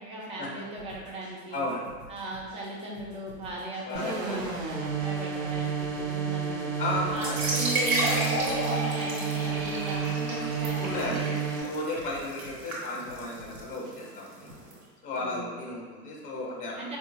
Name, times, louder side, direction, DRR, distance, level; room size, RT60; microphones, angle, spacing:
voice 1, 0.0-1.6 2.1-6.7 7.1-11.4 15.2-15.6 16.8-17.0, right 2 dB, 15° right, -3 dB, 0.4 m, -38 dB
sound 1, 0.7-14.5, equal, 85° right, 1.1 m, -51 dB
voice 2, 1.5-1.9 3.9-4.5 6.8-7.1 10.8-11.3 11.6-14.5 15.0-16.9, left 2 dB, 25° left, -2 dB, 0.7 m, -34 dB
sound 2, 3.9-11.6, right 6 dB, 60° right, 0.7 m, -31 dB
sound 3, 7.1-14.7, right 1 dB, 35° right, 1.0 m, -32 dB
4.3 x 2.2 x 2.7 m, 1.5 s
figure-of-eight pair, 80°, 45 cm